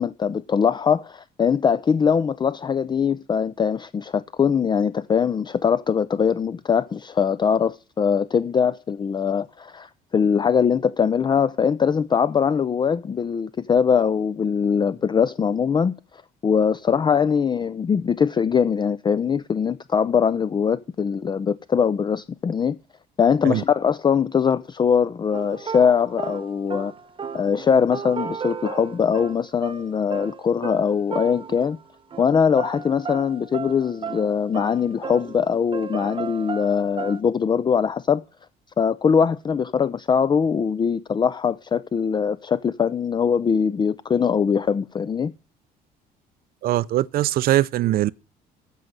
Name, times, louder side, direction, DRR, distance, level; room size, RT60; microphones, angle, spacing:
voice 1, 0.0-15.9 16.4-22.8 23.2-26.9 27.3-31.8 32.2-38.2 38.8-45.3, left 6 dB, 25° left, 0.5 m, -22 dB
sound 1, 25.3-31.8 32.1-32.3 32.6-37.2, right 5 dB, 30° right, 1.0 m, -35 dB
voice 2, 46.6-48.1, right 14 dB, 60° right, 0.5 m, -21 dB
14.0 x 5.3 x 7.7 m
cardioid pair, 110°, 17 cm